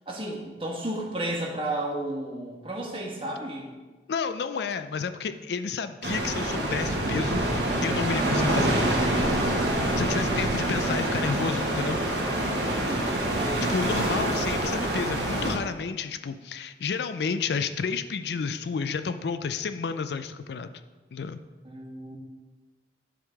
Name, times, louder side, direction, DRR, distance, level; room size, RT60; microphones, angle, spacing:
voice 1, 0.1-3.7 12.6-13.7 21.6-22.2, right 1 dB, 30° right, -1 dB, 1.4 m, -33 dB
voice 2, 4.1-7.4 7.8-8.8 10.0-12.0 13.7-20.7 21.1-21.4, left 5 dB, 70° left, 10 dB, 0.4 m, -30 dB
sound 1, 6.0-15.6, right 1 dB, 75° right, 1.3 m, -26 dB
10.5 x 3.8 x 4.8 m, 1.3 s
head